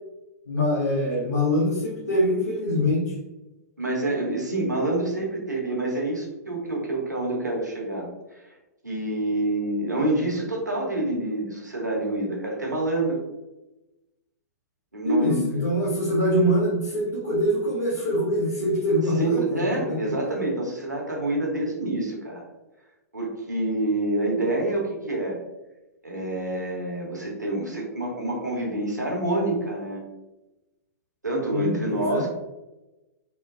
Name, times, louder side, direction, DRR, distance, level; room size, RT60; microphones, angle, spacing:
voice 1, 0.5-3.0 15.0-19.6 19.9-20.0 31.5-32.3, equal, 75° left, -8 dB, 1.0 m, -24 dB
voice 2, 3.8-8.1 8.4-8.5 8.8-13.2 14.9-15.4 19.2-22.5 23.1-25.4 26.0-30.0 31.2-32.3, right 2 dB, 90° right, -1 dB, 0.9 m, -27 dB
3.7 x 2.2 x 2.4 m, 1.0 s
figure-of-eight pair, 110°, 9 cm